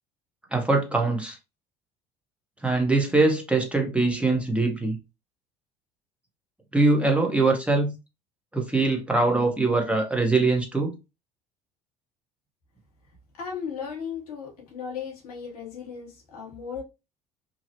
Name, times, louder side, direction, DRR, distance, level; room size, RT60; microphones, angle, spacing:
voice 1, 0.5-1.4 2.6-5.0 6.7-7.9 8.5-10.9, right 3 dB, 5° right, 0.9 m, -22 dB
voice 2, 13.4-16.8, left 6 dB, 75° left, 0.8 m, -36 dB
2.6 x 2.0 x 2.7 m
hypercardioid pair, 60°, 19 cm